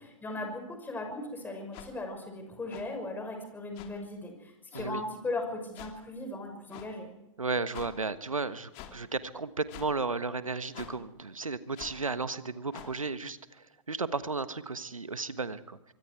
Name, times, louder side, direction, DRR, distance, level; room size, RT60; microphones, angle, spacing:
voice 1, 0.0-7.1, left 2 dB, 10° left, 4 dB, 5.9 m, -38 dB
sound 1, 1.7-1.9 2.7-2.8 3.7-3.9 4.7-4.9 5.7-5.9 6.7-6.9 7.7-7.9 8.7-8.9 9.7-9.9 10.7-10.9 11.7-12.0 12.7-12.9, left 11 dB, 35° left, 2.8 m, -45 dB
voice 2, 7.4-15.9, right 4 dB, 85° right, 13 dB, 1.4 m, -34 dB
24.5 x 24.5 x 4.7 m, 0.94 s
figure-of-eight pair, 110°, 17 cm